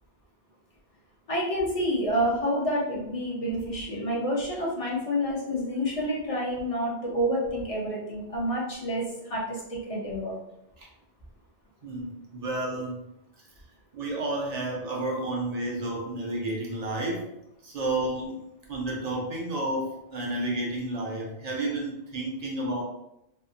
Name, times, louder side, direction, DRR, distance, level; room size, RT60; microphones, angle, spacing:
voice 1, 1.3-10.4, equal, 45° left, -3 dB, 0.5 m, -28 dB
voice 2, 11.8-13.1 13.9-17.3 17.6-18.4 18.7-22.8, right 2 dB, 55° right, -1 dB, 0.5 m, -31 dB
2.6 x 2.0 x 2.5 m, 0.84 s
omnidirectional pair, 1.1 m